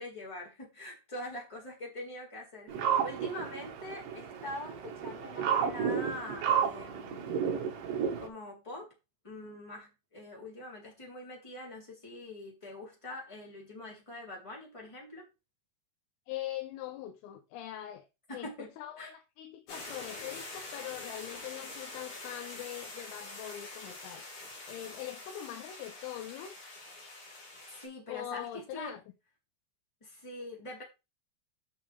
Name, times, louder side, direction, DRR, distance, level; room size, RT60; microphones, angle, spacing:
voice 1, 0.0-7.5 8.2-8.9 9.2-15.3 18.3-18.7 19.0-19.1 27.8-28.9 30.0-30.8, left 1 dB, 10° left, 2.4 m, -44 dB
sound 1, 2.7-8.3, right 7 dB, 65° right, 2.4 m, -32 dB
voice 2, 16.3-18.1 18.3-24.3 24.7-26.5 28.1-29.0, left 12 dB, 85° left, 3.6 m, -42 dB
sound 2, 19.7-27.9, left 2 dB, 50° left, 5.4 m, -45 dB
9.8 x 6.2 x 3.4 m
omnidirectional pair, 5.7 m